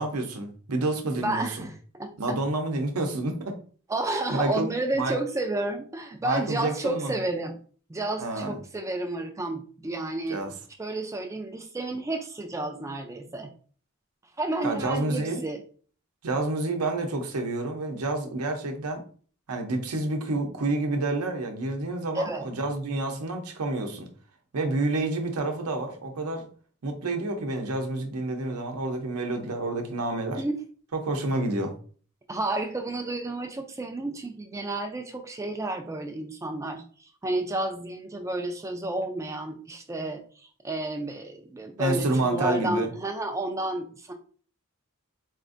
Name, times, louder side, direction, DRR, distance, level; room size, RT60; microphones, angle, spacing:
voice 1, 0.0-1.7 2.2-3.6 4.3-4.7 5.0-5.2 6.2-7.1 8.2-8.6 10.3-10.5 14.6-15.4 16.2-19.0 19.5-24.1 24.5-26.5 26.8-30.4 30.9-31.7 41.8-42.9, right 2 dB, 80° right, 4 dB, 0.7 m, -29 dB
voice 2, 1.2-2.4 3.9-7.6 7.9-10.4 10.8-13.5 14.4-15.6 22.1-22.5 30.4-30.6 32.3-44.1, right 2 dB, 15° right, 5 dB, 0.3 m, -31 dB
4.3 x 2.5 x 2.5 m, 0.43 s
head